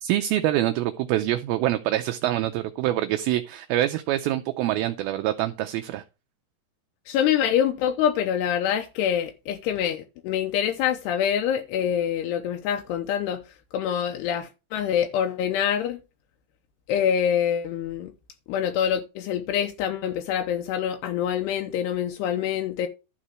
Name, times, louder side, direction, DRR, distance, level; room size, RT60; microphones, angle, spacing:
voice 1, 0.0-6.0, right 14 dB, 80° right, 2.3 m, -25 dB
voice 2, 7.1-13.4 13.7-16.0 16.9-18.1 18.5-22.9, left 9 dB, 80° left, 2.8 m, -25 dB
12.0 x 4.3 x 6.2 m
omnidirectional pair, 4.8 m